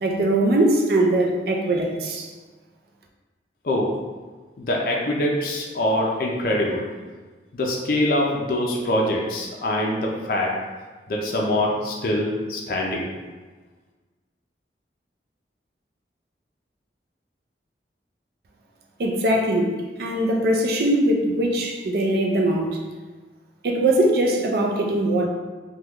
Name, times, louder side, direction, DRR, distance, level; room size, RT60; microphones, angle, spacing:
voice 1, 0.0-2.3 19.0-19.7 20.0-22.7 23.6-25.3, right 1 dB, 60° right, 1 dB, 0.4 m, -21 dB
voice 2, 4.6-6.9 7.5-10.5 11.1-13.1, left 1 dB, 55° left, -2 dB, 0.4 m, -24 dB
2.9 x 2.2 x 3.5 m, 1.3 s
head